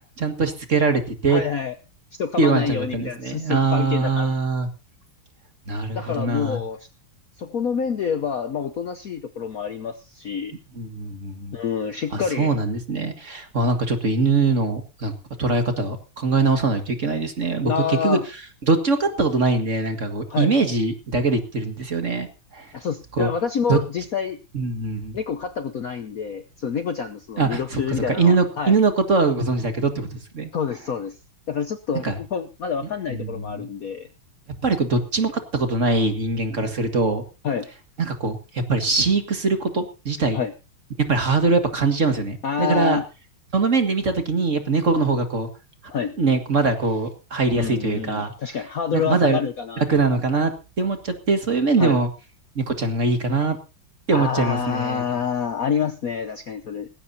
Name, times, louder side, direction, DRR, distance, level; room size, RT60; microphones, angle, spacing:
voice 1, 0.2-1.4 2.4-4.7 5.7-6.6 10.8-11.5 12.1-15.1 15.4-18.2 18.7-22.3 22.5-22.7 23.2-23.3 23.7-23.8 24.5-25.2 27.4-27.8 28.1-30.5 32.0-32.2 33.1-33.7 34.6-37.2 38.0-40.4 41.1-43.0 43.5-45.5 46.2-48.3 48.9-49.4 49.9-50.5 50.8-52.1 52.6-53.6 54.1-55.0, right 3 dB, 35° right, 6 dB, 2.1 m, -22 dB
voice 2, 1.3-1.7 2.1-4.3 5.9-6.9 7.4-10.6 11.5-12.5 17.6-18.3 20.3-20.5 22.7-24.4 25.1-28.8 30.5-31.2 31.5-34.1 37.4-37.7 40.3-40.5 42.4-43.0 45.9-46.2 47.6-49.8 51.8-52.0 54.1-56.9, left 7 dB, 55° left, 8 dB, 1.0 m, -27 dB
19.0 x 16.0 x 2.8 m, 0.31 s
omnidirectional pair, 2.3 m